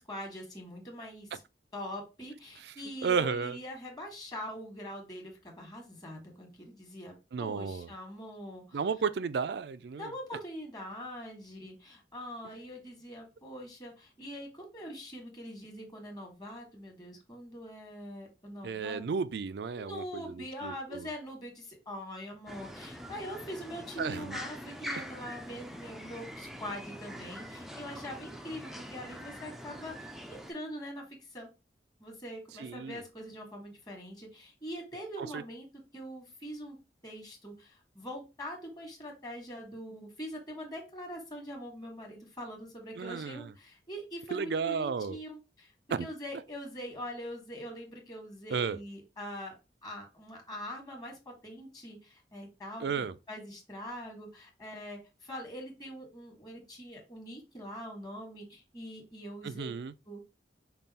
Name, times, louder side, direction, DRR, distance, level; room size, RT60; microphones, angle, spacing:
voice 1, 0.0-1.4 1.7-8.8 10.0-19.0 19.7-31.5 32.0-35.7 35.9-36.8 37.0-45.7 46.0-49.6 49.8-59.7 60.1-60.2, equal, 20° left, 1.5 m, -43 dB
voice 2, 3.0-3.6 7.3-7.9 8.7-10.1 18.6-21.1 24.0-24.4 32.6-33.0 35.2-35.4 43.0-43.5 44.3-45.2 45.9-46.1 48.5-48.8 52.8-53.1 59.4-59.9, right 5 dB, 70° right, 0.4 m, -33 dB
sound 1, 22.5-30.5, equal, ahead, 0.4 m, -44 dB
5.4 x 2.4 x 4.1 m
head